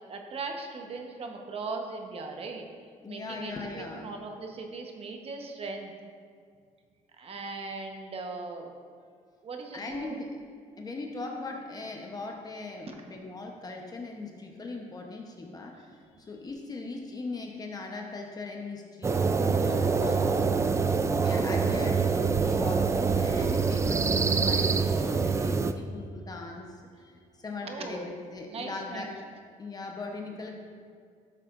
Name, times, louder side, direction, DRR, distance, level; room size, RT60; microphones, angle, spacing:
voice 1, 0.1-2.7 3.1-5.9 7.2-8.7 9.4-10.2 12.9-13.0 15.8-15.9 27.6-28.1 28.5-29.1, right 3 dB, 45° right, 3 dB, 1.1 m, -39 dB
voice 2, 3.0-4.1 9.7-10.3 10.8-29.2 29.6-30.6, left 3 dB, 25° left, 1 dB, 0.9 m, -40 dB
sound 1, 19.0-25.7, right 5 dB, 20° right, 0.4 m, -25 dB
12.5 x 7.4 x 2.5 m, 2.1 s
cardioid pair, 110°, 14 cm